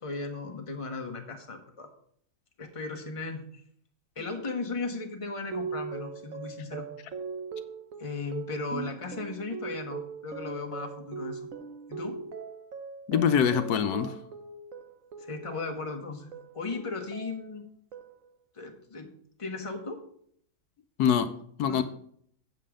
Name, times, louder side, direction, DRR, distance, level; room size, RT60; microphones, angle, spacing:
voice 1, 0.0-1.9 2.6-3.4 4.2-6.9 8.0-11.5 11.9-12.2 15.2-16.3 16.5-17.6 18.5-19.1 19.4-20.0 21.7-21.8, left 3 dB, 20° left, 1.1 m, -36 dB
sound 1, 5.5-16.0 16.3-17.6 17.9-18.4, right 5 dB, 60° right, 1.2 m, -40 dB
voice 2, 13.1-14.2 21.0-21.8, left 8 dB, 80° left, 1.2 m, -25 dB
7.7 x 7.6 x 5.0 m
omnidirectional pair, 1.7 m